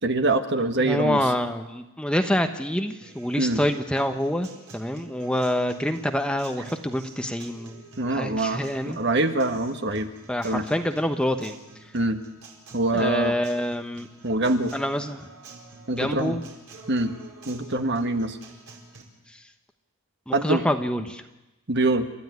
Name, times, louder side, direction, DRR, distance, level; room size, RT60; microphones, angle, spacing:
voice 1, 0.0-1.2 3.4-3.6 8.0-10.1 10.4-10.6 11.9-12.2 12.7-13.3 14.2-14.7 15.9-16.4 16.9-17.1 17.5-18.4 20.3-20.7 21.7-22.1, right 2 dB, 50° right, 7 dB, 1.5 m, -24 dB
voice 2, 0.8-7.8 8.1-9.0 10.3-11.6 12.9-14.1 14.7-15.2 15.9-16.4 19.3-19.4 20.3-21.2, equal, 5° left, 6 dB, 1.0 m, -26 dB
Acoustic guitar, 3.0-19.0, right 3 dB, 85° right, 4.9 m, -48 dB
29.5 x 13.5 x 9.4 m, 0.99 s
head